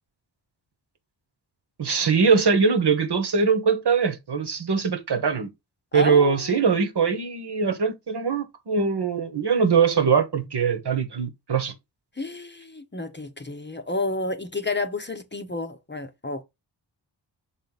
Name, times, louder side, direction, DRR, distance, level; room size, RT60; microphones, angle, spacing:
voice 1, 1.8-5.5 5.9-11.7, right 5 dB, 55° right, 1.3 m, -22 dB
voice 2, 5.9-6.4 12.2-16.4, left 2 dB, 25° left, 0.8 m, -30 dB
5.9 x 4.0 x 4.0 m
cardioid pair, 60°, 47 cm